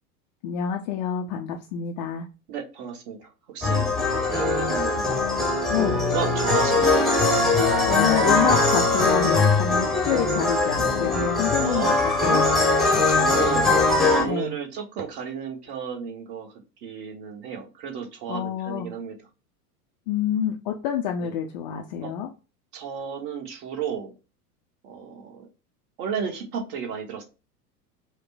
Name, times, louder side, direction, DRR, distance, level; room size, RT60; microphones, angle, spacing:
voice 1, 0.4-2.3 5.7-6.0 7.9-12.4 14.3-14.6 18.3-18.9 20.1-22.3, left 9 dB, 30° left, 3 dB, 0.4 m, -27 dB
voice 2, 2.5-5.1 5.8-7.0 11.6-12.0 12.8-13.8 14.1-16.5 16.8-19.1 21.2-21.3 22.0-22.1 22.7-24.1 24.8-25.5 26.0-27.2, right 7 dB, 45° right, 3 dB, 1.4 m, -33 dB
sound 1, 3.6-14.3, left 3 dB, ahead, 0.9 m, -21 dB
5.0 x 2.1 x 4.0 m, 0.31 s
figure-of-eight pair, 85°, 47 cm